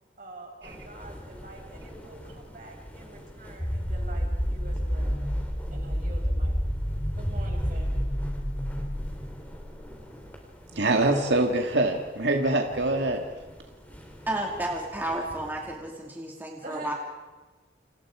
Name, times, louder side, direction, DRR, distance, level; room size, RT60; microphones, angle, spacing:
voice 1, 0.2-5.2 5.7-6.6 7.1-8.0 16.6-16.9, right 2 dB, 50° right, 1 dB, 6.5 m, -45 dB
sound 1, 0.6-15.8, equal, 10° left, 3.8 m, -46 dB
sound 2, 3.6-9.9, equal, 25° left, 2.5 m, -29 dB
voice 2, 10.7-13.3, right 2 dB, 80° right, 3 dB, 2.0 m, -24 dB
voice 3, 14.3-16.9, right 1 dB, 10° right, -1 dB, 2.7 m, -32 dB
29.0 x 28.0 x 5.0 m, 1.3 s
head